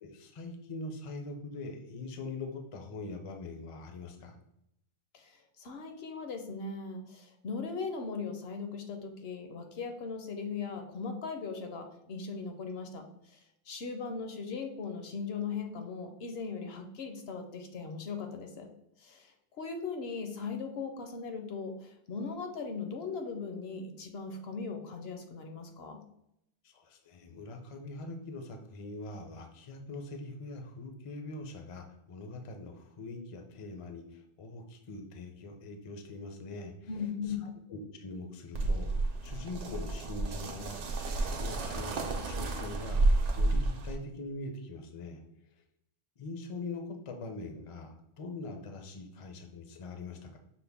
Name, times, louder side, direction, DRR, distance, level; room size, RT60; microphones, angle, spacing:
voice 1, 0.0-4.4 26.6-36.9 37.3-42.0 42.2-45.2 46.2-50.4, left 2 dB, 45° left, 4 dB, 0.4 m, -43 dB
voice 2, 5.1-13.4 13.7-18.7 19.0-26.0 36.9-37.5, left 5 dB, 65° left, 5 dB, 0.8 m, -39 dB
sound 1, 38.5-44.0, right 2 dB, 75° right, 1.0 m, -30 dB
5.8 x 2.1 x 3.4 m, 0.78 s
omnidirectional pair, 1.2 m